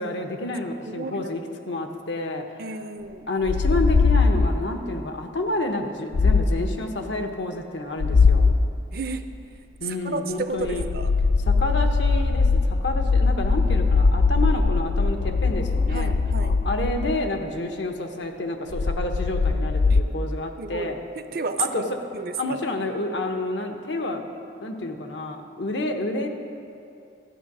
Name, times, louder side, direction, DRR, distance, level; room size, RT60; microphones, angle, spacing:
voice 1, 0.0-2.4 3.3-8.6 9.8-10.8 11.4-16.2 16.6-21.0 21.6-21.8 22.4-24.2 24.6-26.3, left 2 dB, 85° left, 4 dB, 1.1 m, -29 dB
voice 2, 0.9-1.3 2.6-3.3 8.9-9.3 9.8-11.1 15.9-16.6 19.9-20.0 20.6-21.9 22.1-22.6, right 4 dB, 55° right, 9 dB, 0.5 m, -32 dB
sound 1, 3.4-4.7 6.1-6.7 8.0-8.7 10.6-17.3 18.7-20.0, left 4 dB, 65° left, 0.4 m, -21 dB
13.5 x 8.4 x 6.1 m, 2.6 s
head